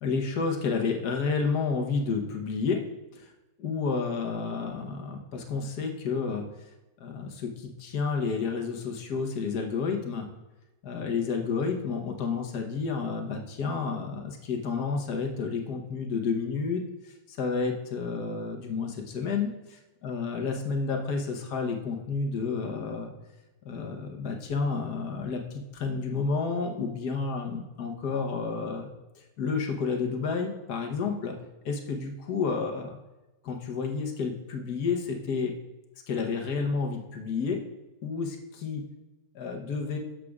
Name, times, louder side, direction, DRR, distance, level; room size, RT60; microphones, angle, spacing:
voice 1, 0.0-2.8 3.1-3.3 3.6-6.4 7.0-10.3 10.8-23.1 23.6-28.9 29.4-31.3 31.6-33.0 33.4-35.5 36.1-37.6 38.0-38.8 39.3-40.0, left 5 dB, 65° left, 3 dB, 1.5 m, -30 dB
11.5 x 7.5 x 2.4 m, 1.0 s
omnidirectional pair, 2.0 m